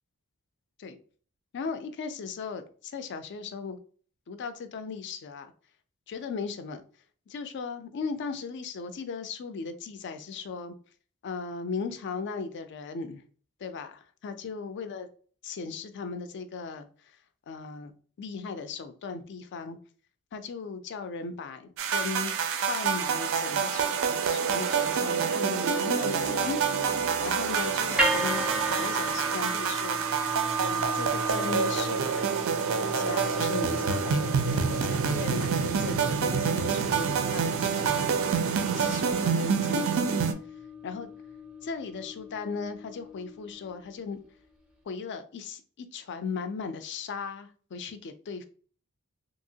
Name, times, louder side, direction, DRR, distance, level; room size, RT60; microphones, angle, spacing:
voice 1, 1.5-3.8 4.3-5.5 6.1-6.8 7.3-10.7 11.2-13.2 13.6-15.1 15.4-16.9 17.5-17.9 18.2-19.8 20.3-22.3 22.7-26.6 26.9-30.0 30.6-32.2 32.7-38.3 38.7-40.3 40.8-41.1 41.6-44.2 44.9-48.5, left 5 dB, 50° left, 0.4 m, -37 dB
sound 1, 21.8-40.3, right 6 dB, 60° right, 0.4 m, -27 dB
sound 2, 26.0-30.1, left 3 dB, 90° left, 0.7 m, -44 dB
sound 3, 28.0-44.2, right 1 dB, 5° right, 0.5 m, -35 dB
2.9 x 2.8 x 2.7 m
head